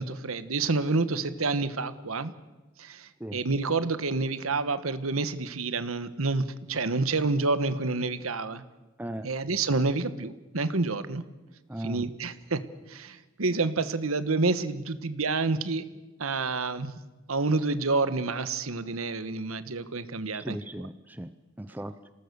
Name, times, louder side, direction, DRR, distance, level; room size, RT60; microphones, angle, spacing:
voice 1, 0.0-2.3 2.8-8.6 9.2-11.2 11.8-12.6 12.9-15.8 16.2-17.0 17.3-20.6, right 3 dB, 85° right, 12 dB, 1.3 m, -28 dB
voice 2, 11.7-12.0 20.3-21.3 21.6-21.9, right 1 dB, 10° right, 11 dB, 0.7 m, -37 dB
27.0 x 18.5 x 6.9 m, 1.2 s
head